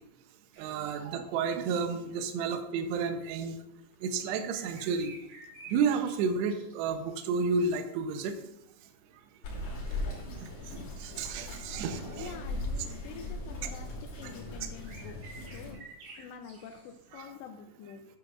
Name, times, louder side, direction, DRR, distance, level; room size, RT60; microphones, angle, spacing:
sound 1, 0.5-0.9 2.9-3.0 3.8-3.9 4.4-7.2 7.9-8.3 8.8-8.9 9.8-10.2 10.9-11.2 13.1-13.3 14.4-14.5 14.7-17.3, right 3 dB, 55° right, 3.2 m, -52 dB
voice 1, 0.6-3.6 4.0-5.1 5.7-8.4 10.4-10.5 11.0-12.3 13.6-13.7, right 5 dB, 75° right, 6 dB, 2.6 m, -31 dB
Bird vocalization bird call bird song, 9.4-15.7, left 2 dB, 50° left, 4.1 m, -39 dB
voice 2, 12.2-15.9 16.2-18.1, left 7 dB, 85° left, 5 dB, 2.5 m, -47 dB
11.5 x 9.7 x 2.5 m, 0.83 s
omnidirectional pair, 5.7 m